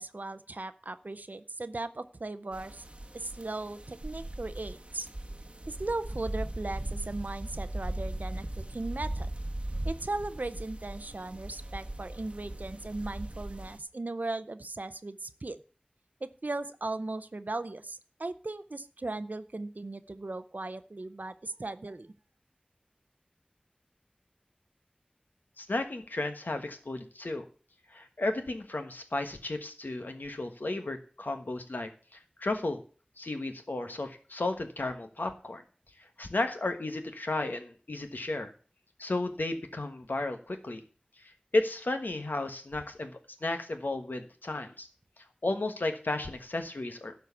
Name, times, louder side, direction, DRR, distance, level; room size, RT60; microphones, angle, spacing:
voice 1, 0.0-2.8 3.1-5.1 5.7-9.3 9.8-15.6 16.2-22.1, right 2 dB, 65° right, 11 dB, 0.5 m, -37 dB
sound 1, 2.5-13.8, right 1 dB, 35° right, 1.0 m, -38 dB
voice 2, 25.6-27.4 27.9-32.8 33.2-35.6 36.2-38.5 39.0-40.8 41.2-44.9 45.4-47.1, left 2 dB, 85° left, 6 dB, 1.3 m, -33 dB
12.0 x 4.7 x 7.0 m, 0.40 s
wide cardioid pair, 45°, 3 cm